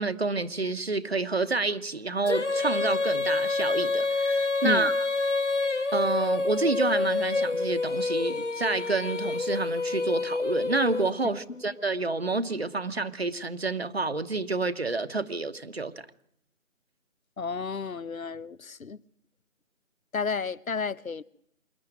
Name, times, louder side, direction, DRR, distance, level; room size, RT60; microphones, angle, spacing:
voice 1, 0.0-4.9 5.9-16.1, right 3 dB, 50° right, 1.3 m, -29 dB
Female singing, 2.2-11.4, left 3 dB, 60° left, 1.4 m, -27 dB
voice 2, 17.4-19.0 20.1-21.2, left 5 dB, 85° left, 0.9 m, -32 dB
26.5 x 10.5 x 9.2 m
figure-of-eight pair, 170°, 40 cm